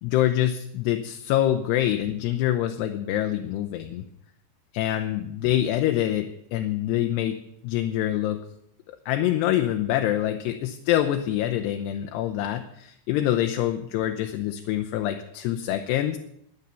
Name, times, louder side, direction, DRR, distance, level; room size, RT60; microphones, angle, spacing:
voice 1, 0.0-4.0 4.7-6.3 6.5-7.4 7.6-8.4 8.9-16.2, left 12 dB, 75° left, 5 dB, 2.8 m, -25 dB
21.5 x 8.9 x 6.8 m, 0.76 s
omnidirectional pair, 5.2 m